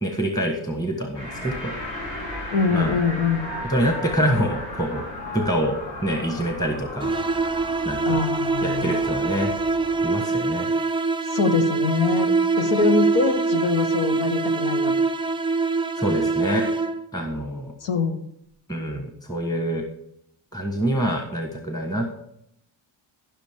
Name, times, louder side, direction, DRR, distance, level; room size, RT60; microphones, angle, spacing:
voice 1, 0.0-1.7 2.0-2.2 2.7-3.0 3.6-5.1 5.3-8.3 8.6-9.5 10.0-10.7 16.0-16.7 17.1-17.7 18.7-19.8 20.5-22.2, equal, 10° left, 3 dB, 1.4 m, -26 dB
sound 1, 1.1-10.0, left 1 dB, 60° left, 4.8 m, -35 dB
voice 2, 2.5-3.5 8.0-9.0 11.3-14.9 17.8-18.2, left 4 dB, 85° left, 7 dB, 1.5 m, -24 dB
sound 2, 7.0-17.2, right 3 dB, 10° right, 0.3 m, -24 dB
15.0 x 6.2 x 3.7 m, 0.75 s
cardioid pair, 125°, 48 cm